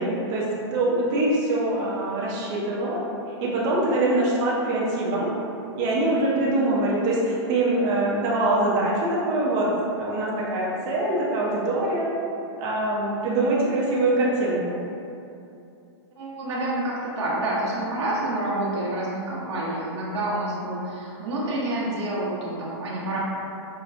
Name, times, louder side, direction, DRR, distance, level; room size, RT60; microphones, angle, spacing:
voice 1, 0.0-3.0 3.4-5.3 5.8-12.1 12.6-14.8, right 2 dB, 25° right, -5 dB, 0.6 m, -24 dB
voice 2, 16.2-23.2, right 1 dB, 75° right, -7 dB, 1.0 m, -28 dB
5.0 x 2.2 x 2.5 m, 2.7 s
hypercardioid pair, 160°, 15 cm